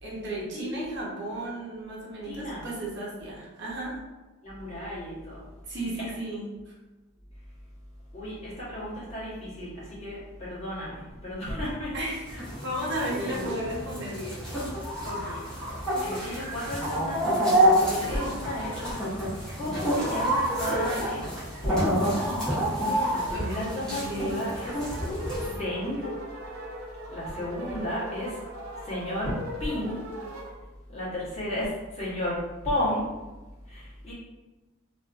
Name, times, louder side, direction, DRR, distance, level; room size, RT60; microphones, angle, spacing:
voice 1, 0.0-4.0 5.7-6.7 11.9-12.2 12.6-14.4 17.8-18.3 22.8-24.4, right 1 dB, 55° right, -5 dB, 0.8 m, -34 dB
voice 2, 0.5-1.0 2.2-2.7 4.4-5.5 5.8-6.0 8.1-12.1 13.1-13.6 15.0-15.5 16.0-17.5 17.9-18.7 19.6-21.2 21.6-21.9 23.1-24.8 25.4-26.1 27.1-28.4 28.7-29.3 29.6-30.0 30.9-33.1 33.7-34.1, left 1 dB, 30° left, -9 dB, 1.1 m, -33 dB
sound 1, 12.3-25.5, equal, 5° left, 0.8 m, -28 dB
sound 2, 23.1-30.5, right 1 dB, 85° right, 0.6 m, -40 dB
2.6 x 2.4 x 2.4 m, 1.1 s
head